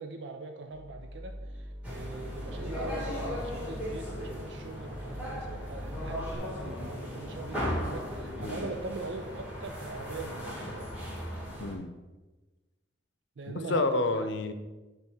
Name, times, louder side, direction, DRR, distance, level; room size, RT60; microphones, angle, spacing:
voice 1, 0.0-10.9 13.4-14.1, right 3 dB, 70° right, 5 dB, 0.5 m, -42 dB
sound 1, 0.7-6.3, equal, 25° right, 0.8 m, -43 dB
sound 2, 1.8-11.7, equal, 10° right, 2.0 m, -37 dB
voice 2, 11.6-11.9 13.7-14.5, left 2 dB, 75° left, 9 dB, 0.7 m, -29 dB
9.8 x 3.9 x 4.8 m, 1.2 s
head